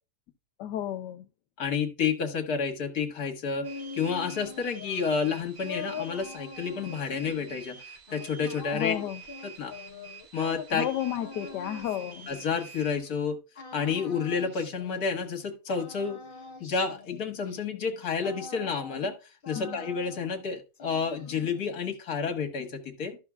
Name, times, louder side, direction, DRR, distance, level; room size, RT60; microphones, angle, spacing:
voice 1, 0.6-1.2 8.7-9.2 10.7-12.3 19.6-19.8, left 11 dB, 80° left, 1.3 m, -32 dB
voice 2, 1.6-7.8 8.1-9.0 9.4-9.7 10.3-10.9 12.3-13.4 13.7-16.2 16.6-19.2 19.5-23.2, left 5 dB, 65° left, 1.9 m, -30 dB
sound 1, 3.2-13.1 13.5-15.4 15.7-19.2 19.4-20.5 20.7-21.7, left 5 dB, 40° left, 0.9 m, -44 dB
sound 2, 3.6-13.0, right 6 dB, 80° right, 3.4 m, -48 dB
13.5 x 6.1 x 2.3 m
omnidirectional pair, 1.8 m